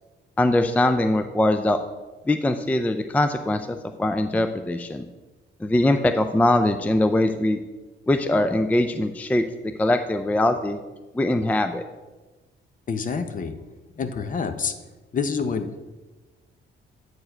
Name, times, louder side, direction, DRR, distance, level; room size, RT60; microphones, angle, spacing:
voice 1, 0.4-1.8 2.3-5.1 5.6-7.6 8.1-9.4 9.8-10.8 11.1-11.8, left 1 dB, 5° left, 8 dB, 0.3 m, -22 dB
voice 2, 12.9-13.5 14.0-14.7 15.1-15.7, left 5 dB, 40° left, 9 dB, 0.7 m, -27 dB
8.2 x 4.6 x 4.4 m, 1.2 s
cardioid pair, 90°, 20 cm